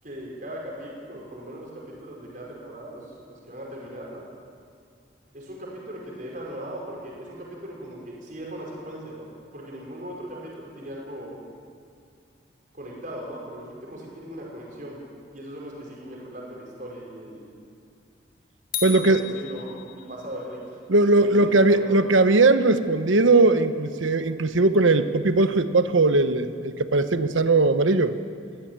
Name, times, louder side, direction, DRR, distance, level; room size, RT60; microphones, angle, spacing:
voice 1, 0.0-4.2 5.3-11.4 12.7-17.5 18.8-20.6 21.0-22.0, right 1 dB, 45° right, -3 dB, 5.5 m, -39 dB
sound 1, 18.7-20.3, left 7 dB, 45° left, 2.3 m, -34 dB
voice 2, 18.8-19.2 20.9-28.2, right 2 dB, 85° right, 10 dB, 1.1 m, -19 dB
23.0 x 17.0 x 9.1 m, 2.3 s
head